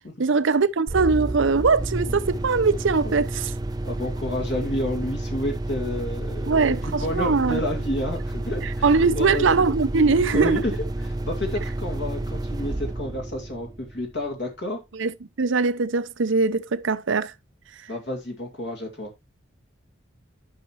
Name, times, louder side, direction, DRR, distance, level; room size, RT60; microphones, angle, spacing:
voice 1, 0.2-3.5 6.5-7.6 8.8-10.6 15.0-17.3, right 4 dB, 70° right, 0.7 m, -21 dB
sound 1, 0.9-14.3, right 1 dB, 20° right, 0.5 m, -30 dB
voice 2, 3.8-9.6 10.3-14.8 17.9-19.1, left 1 dB, 60° left, 2.3 m, -30 dB
11.5 x 5.9 x 3.1 m
head